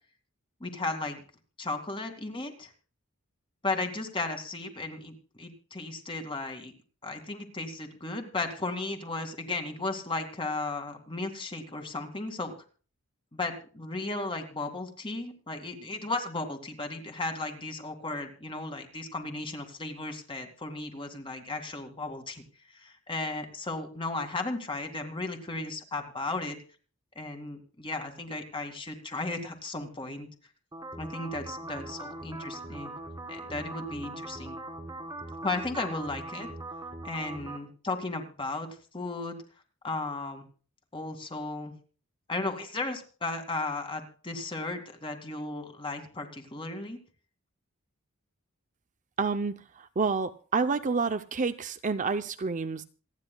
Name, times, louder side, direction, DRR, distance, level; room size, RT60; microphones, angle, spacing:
voice 1, 0.6-1.2 1.6-2.7 3.6-6.7 7.0-12.5 13.3-22.4 22.7-26.6 27.2-30.3 31.0-32.9 33.3-34.6 35.4-36.5 37.0-38.7 38.9-39.4 39.8-40.4 40.9-41.7 42.3-47.0, left 2 dB, 25° left, 2.3 m, -35 dB
sound 1, 30.7-37.6, right 2 dB, 20° right, 1.8 m, -40 dB
voice 2, 49.2-52.8, right 4 dB, 35° right, 0.6 m, -29 dB
27.5 x 9.9 x 2.3 m
head